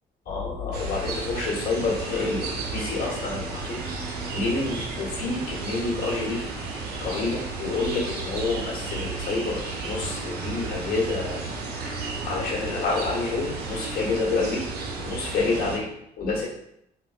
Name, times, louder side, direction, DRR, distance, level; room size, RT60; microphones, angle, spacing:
voice 1, 0.2-3.8 4.2-6.5 7.0-11.4 11.8-14.6 15.0-15.9 16.2-16.5, left 3 dB, 60° left, -5 dB, 1.3 m, -28 dB
sound 1, 0.7-15.8, right 3 dB, 75° right, 0.6 m, -33 dB
3.9 x 2.1 x 2.4 m, 0.75 s
cardioid pair, 110°, 17 cm